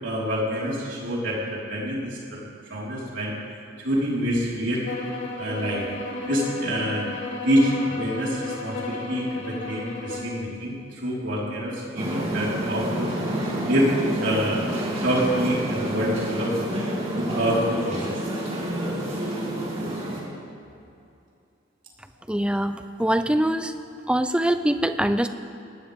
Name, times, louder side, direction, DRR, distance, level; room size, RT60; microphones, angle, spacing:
voice 1, 0.0-2.4 2.7-3.4 3.8-4.9 5.4-5.9 6.3-7.1 7.4-13.4 13.6-13.9 14.2-14.6 15.0-16.6 17.1-18.2, equal, 65° right, -6 dB, 4.6 m, -26 dB
sound 1, 4.8-10.4, left 2 dB, 60° left, 2.5 m, -33 dB
sound 2, 12.0-20.2, right 1 dB, 30° right, 3.0 m, -28 dB
voice 2, 22.3-23.7 24.1-25.3, right 1 dB, 5° right, 9 dB, 0.6 m, -23 dB
20.0 x 19.0 x 3.7 m, 2.5 s
head